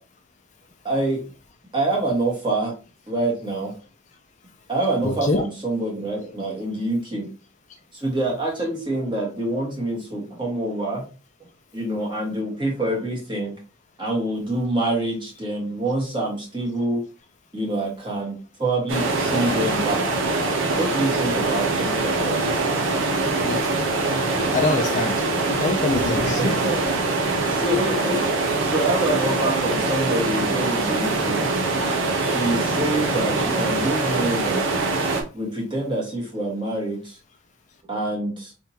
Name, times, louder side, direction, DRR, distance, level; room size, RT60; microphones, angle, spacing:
voice 1, 0.8-1.2 1.7-2.7 3.1-3.7 4.7-7.3 7.9-11.0 11.7-13.6 14.0-17.0 17.5-20.0 20.8-22.6 26.4-26.8 27.5-28.2 28.6-31.5 32.2-34.7 35.3-37.2 37.9-38.5, right 1 dB, 25° right, -2 dB, 1.5 m, -26 dB
voice 2, 5.0-5.4 23.4-23.7 24.5-25.2 25.5-26.6, left 2 dB, 35° left, 5 dB, 0.4 m, -24 dB
sound 1, 18.9-35.2, right 3 dB, 75° right, 0.9 m, -23 dB
4.1 x 3.5 x 2.8 m, 0.33 s
head